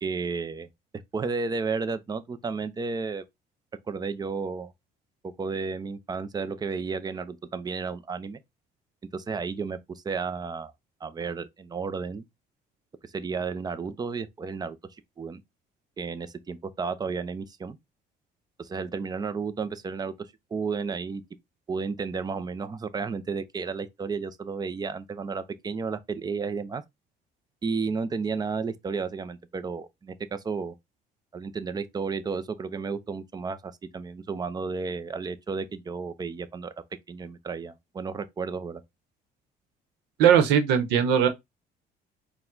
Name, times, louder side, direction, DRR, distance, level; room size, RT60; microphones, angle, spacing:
voice 1, 0.0-0.7 1.1-3.2 3.9-4.7 5.4-8.4 9.1-10.7 11.0-12.2 13.0-14.8 15.2-15.4 16.0-17.8 18.6-20.1 20.5-21.2 21.7-26.8 27.6-30.7 31.3-36.7 37.1-38.8, right 5 dB, 25° right, 0.6 m, -32 dB
voice 2, 40.2-41.3, right 8 dB, 90° right, 1.0 m, -19 dB
4.6 x 2.3 x 3.7 m
cardioid pair, 110°, 17 cm